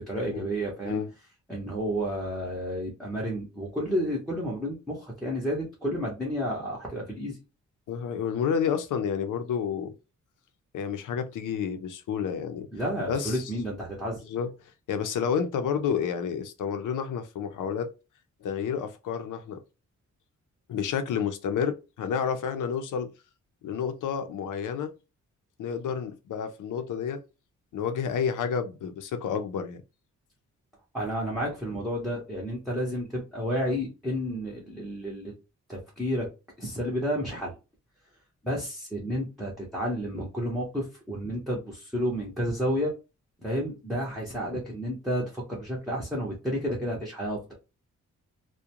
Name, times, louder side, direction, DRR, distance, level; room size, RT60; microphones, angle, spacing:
voice 1, 0.1-1.0 1.5-7.4 12.7-14.2 30.9-35.3 35.7-36.3 36.6-37.5 38.4-42.9 43.4-47.5, equal, ahead, 0.6 m, -31 dB
voice 2, 7.9-9.9 10.7-12.7 13.1-13.5 14.3-14.5 14.9-17.9 18.4-19.6 20.7-23.1 23.6-24.9 25.6-27.2 27.7-29.8, left 7 dB, 80° left, 0.5 m, -30 dB
2.4 x 2.1 x 2.8 m
wide cardioid pair, 155°, 31 cm